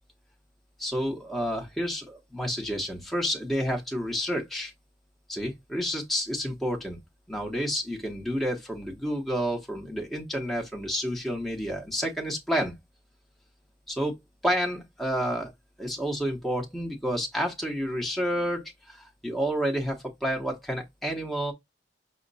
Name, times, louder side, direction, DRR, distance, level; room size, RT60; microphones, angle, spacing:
voice 1, 0.8-4.7 5.3-7.0 7.3-12.8 13.9-14.2 14.4-15.5 15.8-21.5, equal, ahead, 0.9 m, -30 dB
5.7 x 2.1 x 4.0 m
head